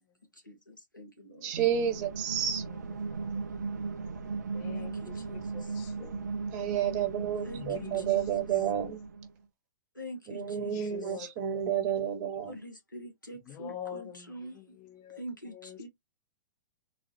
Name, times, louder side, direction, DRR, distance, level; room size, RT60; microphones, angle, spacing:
voice 1, 0.3-1.5 4.8-5.8 7.4-8.3 9.9-11.0 12.5-14.6 15.2-15.9, equal, 85° left, 1.2 m, -45 dB
voice 2, 1.4-2.6 6.5-9.0 10.3-12.6, right 9 dB, 35° right, 1.3 m, -30 dB
sound 1, 1.5-9.3, right 4 dB, 60° right, 0.5 m, -37 dB
voice 3, 3.1-3.4 4.5-6.3 7.6-8.1 8.5-8.6 10.8-11.6 13.5-15.2 15.5-15.9, left 9 dB, 30° left, 0.7 m, -45 dB
3.9 x 2.4 x 2.8 m
figure-of-eight pair, 105°, 10 cm